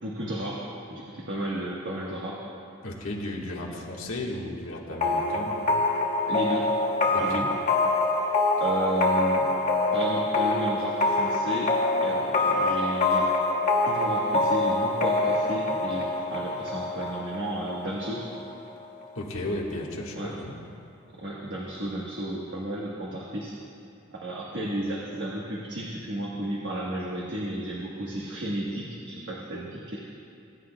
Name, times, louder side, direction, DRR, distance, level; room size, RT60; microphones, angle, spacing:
voice 1, 0.0-2.4 6.3-6.7 7.2-7.4 8.6-9.5 9.9-11.7 12.0-13.3 13.8-18.2 20.2-20.3 21.2-23.5 24.1-30.1, right 1 dB, 60° right, -4 dB, 1.3 m, -33 dB
voice 2, 2.8-5.7 7.1-7.5 19.1-20.5, left 1 dB, 80° left, -2 dB, 1.6 m, -34 dB
sound 1, 5.0-18.5, left 2 dB, 40° left, 0.9 m, -25 dB
20.5 x 10.0 x 2.3 m, 2.5 s
head